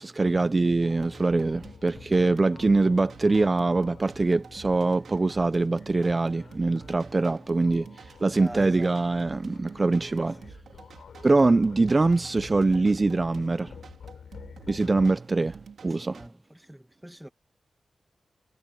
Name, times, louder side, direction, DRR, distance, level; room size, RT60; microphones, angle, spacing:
voice 1, 0.0-10.4 11.2-13.8 14.7-16.2, right 3 dB, 30° right, 0.4 m, -23 dB
sound 1, 0.7-16.3, right 6 dB, 85° right, 3.9 m, -49 dB
sound 2, 0.8-15.1, left 7 dB, 85° left, 6.4 m, -49 dB
voice 2, 8.4-9.3 10.1-10.9 11.5-11.6 15.8-17.3, equal, 5° right, 1.6 m, -45 dB
wide cardioid pair, 120°, 0 cm